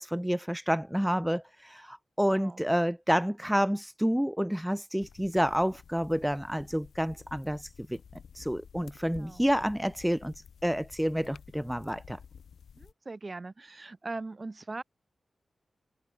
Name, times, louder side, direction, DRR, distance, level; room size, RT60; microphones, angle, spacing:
voice 1, 0.0-8.0 8.3-10.3 10.6-12.2, equal, 5° right, 0.9 m, -29 dB
voice 2, 2.3-2.6 9.1-9.5 12.7-14.8, right 3 dB, 40° right, 6.6 m, -40 dB
sound 1, 5.0-12.9, left 7 dB, 90° left, 5.0 m, -52 dB
cardioid pair, 55°, 0 cm